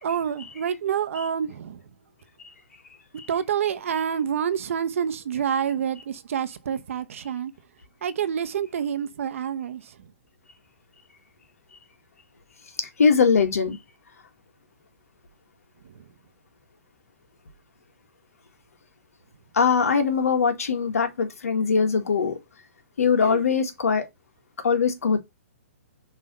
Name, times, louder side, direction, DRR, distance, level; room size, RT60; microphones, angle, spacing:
voice 1, 0.0-1.8 3.3-7.5 8.0-10.1 16.0-16.1 23.2-23.5, right 8 dB, 65° right, 0.8 m, -28 dB
voice 2, 13.0-13.8 19.5-22.4 23.0-24.1 24.6-25.2, left 5 dB, 90° left, 1.7 m, -21 dB
5.7 x 3.3 x 5.4 m
hypercardioid pair, 155°, 8 cm